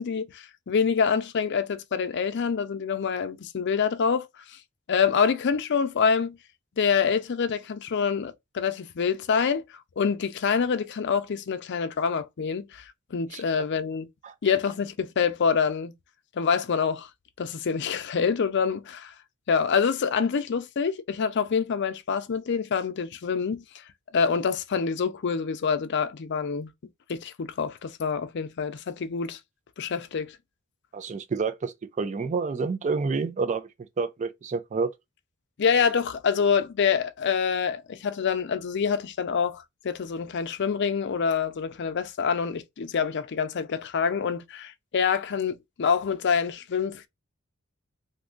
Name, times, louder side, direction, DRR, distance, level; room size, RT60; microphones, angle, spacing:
voice 1, 0.0-4.3 4.9-6.4 6.8-9.6 10.0-12.8 13.1-14.1 14.4-15.9 16.4-17.1 17.4-19.1 19.5-23.6 24.1-26.7 27.1-29.4 29.8-30.4 35.6-47.1, left 6 dB, 55° left, 0.4 m, -26 dB
voice 2, 30.9-33.7 34.0-34.9, right 4 dB, 35° right, 0.4 m, -28 dB
2.6 x 2.5 x 3.6 m
head